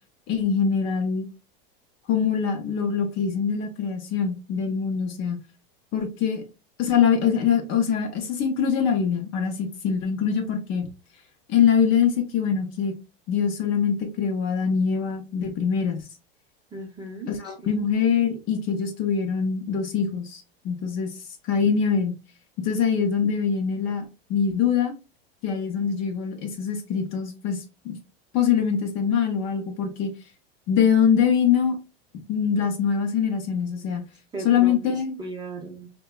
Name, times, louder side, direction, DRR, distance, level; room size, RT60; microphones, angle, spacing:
voice 1, 0.3-1.3 2.1-5.4 5.9-6.4 6.8-10.9 11.5-13.0 13.3-16.0 17.3-21.1 21.5-22.2 22.6-24.0 24.3-24.9 25.4-28.0 28.3-30.1 30.7-31.8 32.3-34.1 34.4-35.2, left 7 dB, 40° left, 0.6 m, -23 dB
voice 2, 16.7-17.7 34.3-35.9, right 2 dB, 15° right, 0.6 m, -37 dB
2.7 x 2.2 x 2.2 m
supercardioid pair, 120°, 31 cm